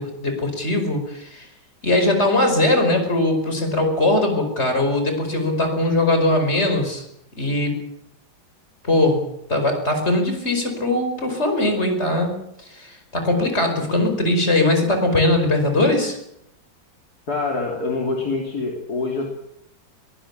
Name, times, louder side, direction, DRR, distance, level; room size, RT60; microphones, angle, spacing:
voice 1, 0.0-1.5 1.8-7.0 7.4-7.8 8.8-9.2 9.5-16.2, left 2 dB, 30° left, 5 dB, 5.4 m, -20 dB
voice 2, 17.3-19.2, left 3 dB, 50° left, -1 dB, 3.6 m, -25 dB
22.5 x 19.5 x 7.5 m, 0.77 s
omnidirectional pair, 2.2 m